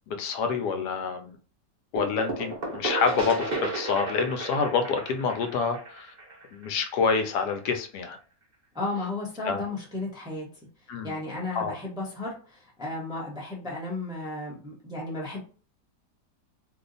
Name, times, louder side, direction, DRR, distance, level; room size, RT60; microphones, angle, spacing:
voice 1, 0.1-1.4 1.9-6.1 6.5-8.2 9.4-9.6 10.9-11.1 11.5-11.8, left 5 dB, 80° left, 6 dB, 1.1 m, -27 dB
sound 1, 2.0-7.5, right 2 dB, 90° right, 0.4 m, -34 dB
voice 2, 8.7-10.5 11.0-15.4, left 2 dB, 5° right, -3 dB, 0.5 m, -34 dB
2.7 x 2.4 x 3.8 m, 0.39 s
omnidirectional pair, 1.8 m